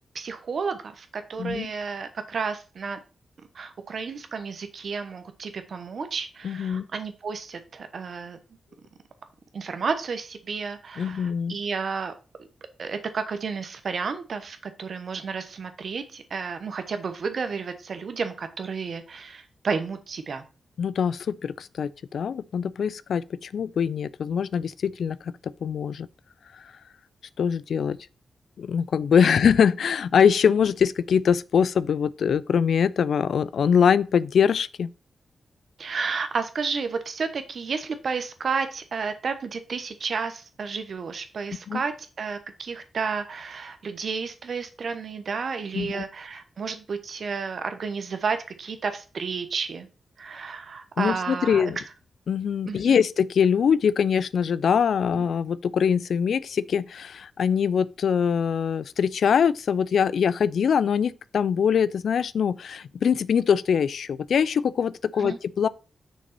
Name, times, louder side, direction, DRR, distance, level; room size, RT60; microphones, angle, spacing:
voice 1, 0.1-3.0 3.5-8.4 9.5-12.1 12.8-20.4 29.1-29.3 35.8-49.9 50.2-51.6 52.6-53.0 55.1-55.2 65.1-65.4, right 5 dB, 65° right, 1.1 m, -31 dB
voice 2, 1.4-1.7 6.4-6.9 11.0-11.6 20.8-26.1 26.5-26.7 27.4-28.0 28.6-34.9 41.7-41.8 45.7-46.0 51.0-51.8 52.3-65.7, left 7 dB, 80° left, 0.3 m, -23 dB
6.2 x 3.9 x 5.9 m
cardioid pair, 60°, 0 cm